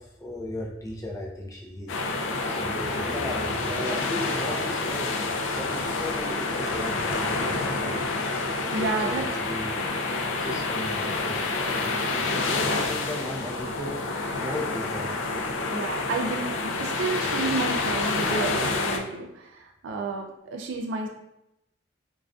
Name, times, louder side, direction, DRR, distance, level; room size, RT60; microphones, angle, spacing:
voice 1, 0.0-2.0 2.4-8.0 8.8-9.8 10.3-11.9 12.3-15.1, left 1 dB, 15° left, -2 dB, 0.4 m, -36 dB
sound 1, 1.9-19.0, left 3 dB, 90° left, 0.3 m, -28 dB
voice 2, 8.7-9.2 15.7-21.1, right 3 dB, 90° right, 2 dB, 0.3 m, -31 dB
2.4 x 2.3 x 2.3 m, 0.85 s
head